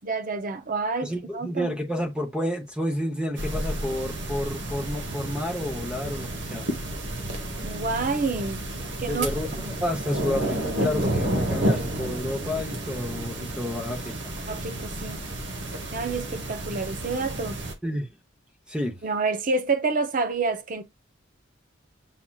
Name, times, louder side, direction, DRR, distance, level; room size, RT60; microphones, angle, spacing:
voice 1, 0.0-1.7 7.6-8.6 9.0-9.3 9.6-9.7 14.5-15.2 15.9-17.6 19.0-20.8, right 4 dB, 45° right, 0.6 m, -28 dB
voice 2, 1.0-6.7 9.1-14.3 17.8-18.1 18.7-19.0, left 1 dB, 5° right, 0.8 m, -30 dB
sound 1, 3.4-17.7, right 1 dB, 65° right, 1.1 m, -31 dB
7.3 x 2.8 x 2.3 m
head